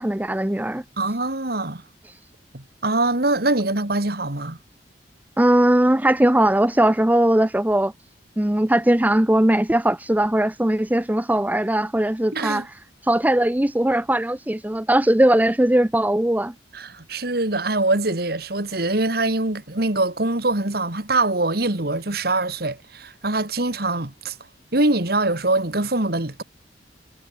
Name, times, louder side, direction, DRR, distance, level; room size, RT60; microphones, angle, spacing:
voice 1, 0.0-0.8 5.4-7.9 8.4-12.7 13.0-16.5, right 1 dB, 10° right, 0.6 m, -19 dB
voice 2, 1.0-1.8 2.5-4.6 12.3-12.7 16.7-24.4 24.7-26.4, right 2 dB, 60° right, 2.5 m, -23 dB
head